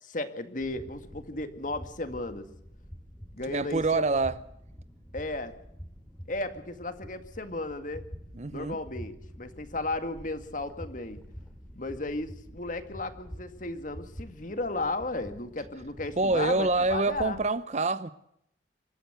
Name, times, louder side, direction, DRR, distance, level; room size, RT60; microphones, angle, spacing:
voice 1, 0.0-2.5 3.3-4.0 5.1-5.5 6.3-8.0 8.5-11.2 11.7-17.4, left 2 dB, 45° left, 2.0 m, -34 dB
sound 1, 0.6-17.5, equal, 5° left, 2.8 m, -47 dB
voice 2, 3.5-4.4 8.3-8.8 16.2-18.1, right 3 dB, 40° right, 0.7 m, -26 dB
26.0 x 13.0 x 8.1 m
head